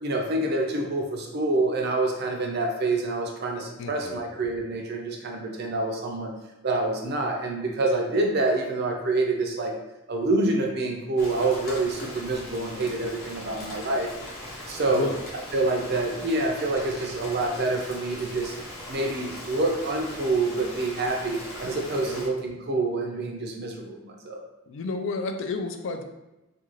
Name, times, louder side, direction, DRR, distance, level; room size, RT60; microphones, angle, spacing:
voice 1, 0.0-6.3 6.6-9.7 10.1-14.1 14.7-15.1 15.5-18.5 18.9-24.4, right 2 dB, 50° right, 1 dB, 0.4 m, -27 dB
voice 2, 3.8-4.2 14.9-15.2 22.1-22.2 24.7-26.0, left 3 dB, 60° left, 5 dB, 0.3 m, -31 dB
Rain, 11.2-22.3, left 1 dB, 45° left, 0.8 m, -40 dB
2.5 x 2.3 x 3.0 m, 1.0 s
head